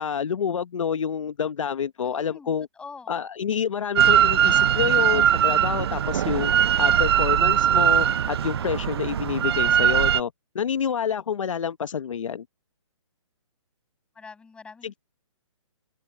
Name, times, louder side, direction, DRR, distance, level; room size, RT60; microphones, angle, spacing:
voice 1, 0.0-2.7 3.1-6.5 6.8-12.4 14.8-14.9, left 7 dB, 70° left, 1.1 m, -28 dB
voice 2, 2.0-3.2 8.3-8.7 14.1-15.0, left 4 dB, 5° left, 7.7 m, -46 dB
Drill, 4.0-10.2, right 9 dB, 50° right, 0.6 m, -20 dB
open air
hypercardioid pair, 165°, 17 cm